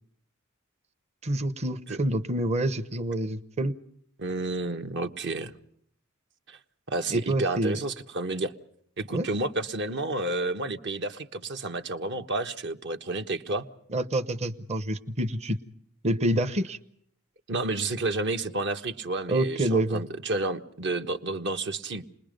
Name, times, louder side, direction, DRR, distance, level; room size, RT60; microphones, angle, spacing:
voice 1, 1.2-3.8 7.1-7.8 9.1-9.3 13.9-15.6 16.0-16.8 19.3-20.0, right 1 dB, 30° right, 9 dB, 0.9 m, -27 dB
voice 2, 4.2-5.5 6.5-6.6 6.9-8.5 9.0-13.6 17.5-22.1, right 2 dB, 55° right, 7 dB, 1.3 m, -30 dB
29.5 x 21.0 x 5.2 m, 0.67 s
head